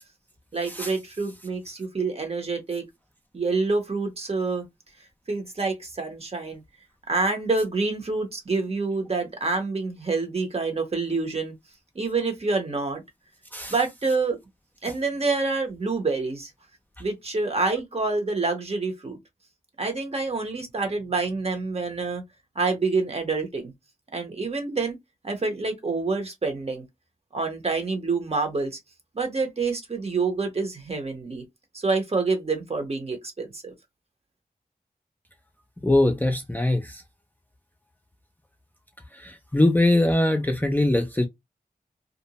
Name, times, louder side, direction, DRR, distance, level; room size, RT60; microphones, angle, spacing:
voice 1, 0.5-2.8 3.3-4.6 5.3-6.6 7.1-11.5 11.9-13.0 13.7-14.4 14.8-16.5 17.0-19.2 19.8-22.2 22.6-23.7 24.1-25.0 25.2-26.8 27.3-28.8 29.1-31.4 31.7-33.7, right 3 dB, 45° right, 0.9 m, -27 dB
voice 2, 35.8-37.0 39.1-41.3, left 1 dB, 10° left, 0.4 m, -22 dB
2.5 x 2.1 x 2.9 m
wide cardioid pair, 100°, 15 cm